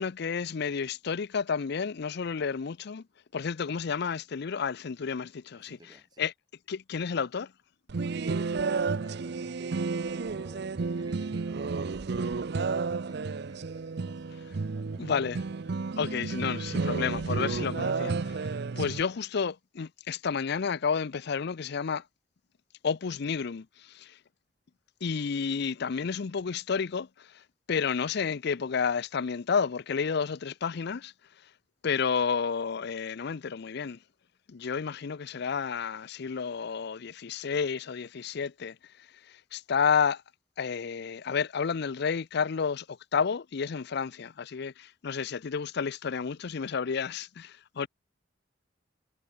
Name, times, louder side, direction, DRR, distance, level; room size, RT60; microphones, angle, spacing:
voice 1, 0.0-3.0 3.3-5.8 6.2-6.3 6.7-7.5 15.0-15.4 16.0-18.5 18.8-22.0 22.8-24.1 25.0-27.1 27.7-31.1 31.8-34.0 34.5-38.8 39.5-40.2 40.6-47.9, left 6 dB, 60° left, 0.5 m, -31 dB
voice 2, 5.5-6.3 8.7-14.3 14.7-15.7, right 1 dB, 20° right, 3.0 m, -54 dB
sound 1, 7.9-19.0, right 4 dB, 60° right, 0.6 m, -32 dB
head